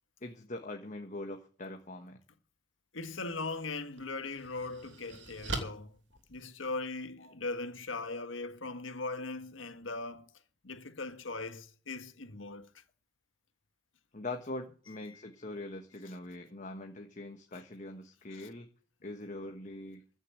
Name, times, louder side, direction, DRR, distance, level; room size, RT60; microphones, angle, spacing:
voice 1, 0.2-2.2 7.2-7.3 14.1-18.7 19.0-20.0, left 2 dB, 40° left, 1.3 m, -42 dB
voice 2, 2.9-6.0 6.3-10.3 10.6-12.8 15.1-15.3 18.3-18.5, left 3 dB, 80° left, 1.7 m, -39 dB
sound 1, 3.3-3.4 4.0-7.0, right 3 dB, 65° right, 3.1 m, -42 dB
15.5 x 6.7 x 8.9 m
head